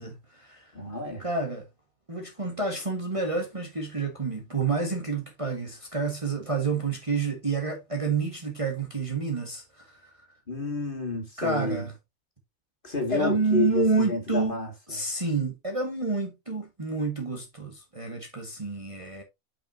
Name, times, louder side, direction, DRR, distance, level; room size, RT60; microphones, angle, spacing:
voice 1, 0.0-0.7 1.2-1.6 2.1-10.1 11.4-11.9 13.1-14.6 14.9-19.2, right 4 dB, 25° right, 1.4 m, -29 dB
voice 2, 0.7-1.3 10.5-11.9 12.8-15.0, left 2 dB, 35° left, 2.3 m, -30 dB
8.4 x 5.9 x 2.6 m
omnidirectional pair, 1.5 m